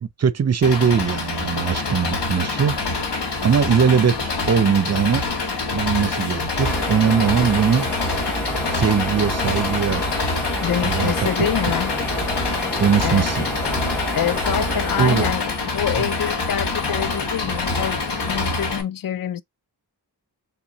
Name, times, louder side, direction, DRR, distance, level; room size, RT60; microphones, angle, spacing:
voice 1, 0.0-2.8 3.4-5.3 5.7-7.9 8.7-10.0 10.8-11.5 12.8-13.5 15.0-15.3, right 7 dB, 40° right, 0.5 m, -20 dB
Engine, 0.6-18.8, left 3 dB, 75° left, 1.1 m, -25 dB
sound 1, 6.6-15.3, equal, 5° left, 1.8 m, -29 dB
voice 2, 10.6-11.9 13.0-13.5 14.1-19.4, left 10 dB, 55° left, 0.5 m, -26 dB
3.6 x 3.5 x 2.9 m
wide cardioid pair, 55°, 41 cm